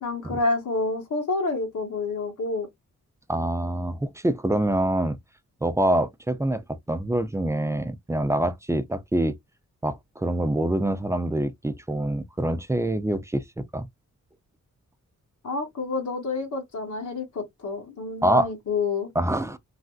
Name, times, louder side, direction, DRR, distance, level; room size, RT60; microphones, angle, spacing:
voice 1, 0.0-2.7 15.4-19.1, left 3 dB, 70° left, 1.0 m, -28 dB
voice 2, 3.3-5.2 5.6-9.4 9.8-13.9 18.2-18.5 19.2-19.6, right 1 dB, 10° right, 0.3 m, -25 dB
3.2 x 2.5 x 2.3 m
wide cardioid pair, 145°, 32 cm